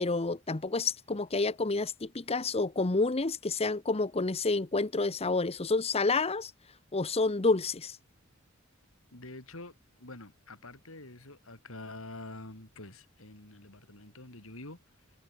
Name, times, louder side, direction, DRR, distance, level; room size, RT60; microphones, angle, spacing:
voice 1, 0.0-6.5 6.9-8.0, left 3 dB, 30° left, 0.9 m, -29 dB
voice 2, 9.1-14.8, left 2 dB, 75° left, 4.9 m, -47 dB
head